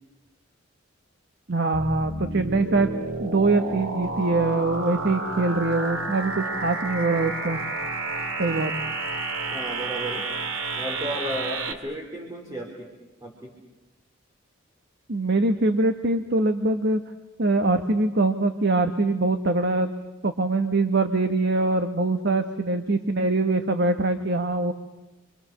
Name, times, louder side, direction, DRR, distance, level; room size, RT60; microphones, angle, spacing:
voice 1, 1.5-2.9 3.2-7.6 8.4-8.7 15.1-17.0 17.4-19.9 20.2-24.7, right 2 dB, 60° right, 7 dB, 1.2 m, -23 dB
sound 1, 1.7-11.7, right 3 dB, 85° right, 2.4 m, -30 dB
voice 2, 9.5-10.2 10.8-12.9 13.2-13.5, equal, 20° right, -1 dB, 3.9 m, -33 dB
29.0 x 25.0 x 6.6 m, 1.0 s
head